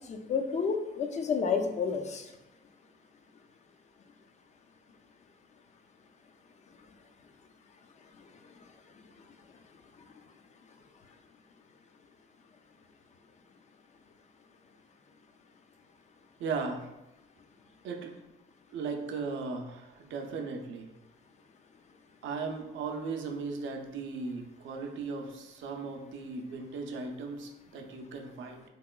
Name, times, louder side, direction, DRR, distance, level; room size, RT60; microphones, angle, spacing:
voice 1, 0.1-2.3, left 5 dB, 35° left, 6 dB, 0.4 m, -30 dB
voice 2, 16.4-16.9 17.8-18.1 18.7-20.9 22.2-28.6, right 4 dB, 75° right, 3 dB, 0.5 m, -37 dB
3.0 x 2.9 x 2.2 m, 0.97 s
cardioid pair, 90°, 20 cm